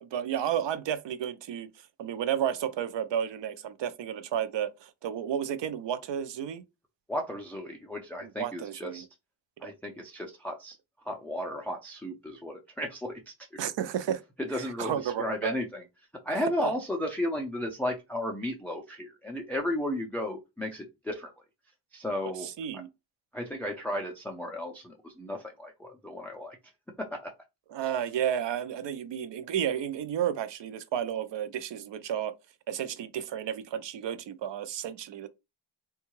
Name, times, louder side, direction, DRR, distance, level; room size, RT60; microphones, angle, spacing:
voice 1, 0.0-1.7 2.0-6.6 8.2-9.1 9.6-9.7 13.6-14.2 14.5-15.5 22.4-22.9 27.7-32.3 32.7-35.3, right 9 dB, 65° right, 0.5 m, -32 dB
voice 2, 7.1-9.1 9.6-10.8 11.0-13.6 14.4-15.8 16.2-21.3 21.9-22.5 23.3-26.6 27.1-27.2 27.8-27.9, left 1 dB, 5° left, 0.3 m, -34 dB
3.6 x 2.3 x 2.9 m
wide cardioid pair, 135°, 48 cm